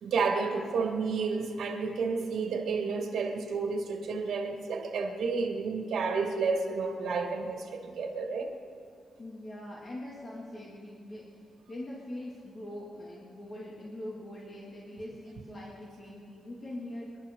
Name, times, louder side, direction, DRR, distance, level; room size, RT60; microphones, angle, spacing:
voice 1, 0.0-8.5, right 4 dB, 80° right, 3 dB, 1.9 m, -31 dB
voice 2, 9.2-17.2, left 1 dB, 35° left, -5 dB, 2.3 m, -42 dB
27.5 x 11.5 x 3.8 m, 2.4 s
wide cardioid pair, 150°, 0 cm